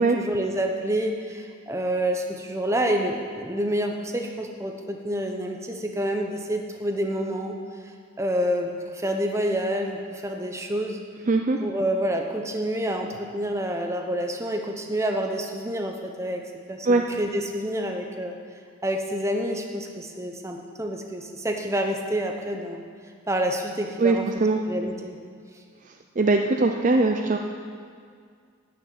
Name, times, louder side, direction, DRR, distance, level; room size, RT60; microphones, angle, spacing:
voice 1, 0.0-7.6 8.2-11.0 11.6-16.4 16.7-18.4 18.8-22.8 23.3-24.3 24.7-25.1, equal, 15° right, 3 dB, 0.8 m, -28 dB
voice 2, 11.3-11.6 16.9-17.0 24.0-24.6 26.2-27.4, right 3 dB, 35° right, 4 dB, 0.5 m, -21 dB
11.5 x 6.9 x 8.5 m, 2.1 s
head